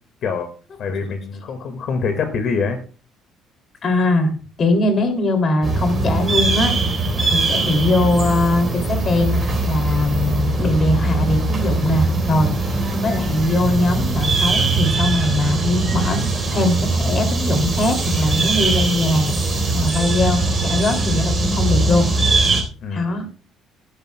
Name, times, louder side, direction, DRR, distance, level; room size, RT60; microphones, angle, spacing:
voice 1, 0.2-0.5 0.8-2.8 22.8-23.2, left 5 dB, 50° left, 6 dB, 1.8 m, -25 dB
voice 2, 3.8-4.3 4.6-6.9 7.3-19.3 19.7-22.1 22.9-23.3, left 2 dB, 35° left, 6 dB, 2.6 m, -21 dB
sound 1, 5.6-22.6, right 3 dB, 15° right, 3.8 m, -21 dB
15.5 x 12.0 x 2.2 m, 0.38 s
cardioid pair, 155°, 0 cm